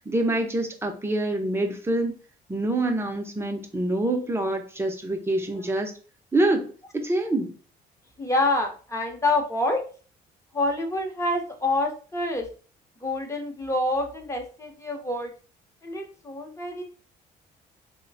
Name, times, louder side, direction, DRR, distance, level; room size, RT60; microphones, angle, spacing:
voice 1, 0.0-2.1 2.5-5.9 6.3-7.6, right 1 dB, 15° right, 3 dB, 0.6 m, -26 dB
voice 2, 8.2-9.8 10.5-12.5 13.0-15.3 15.8-16.8, left 2 dB, 15° left, 3 dB, 0.8 m, -27 dB
3.0 x 2.1 x 3.9 m, 0.38 s
cardioid pair, 110°, 17 cm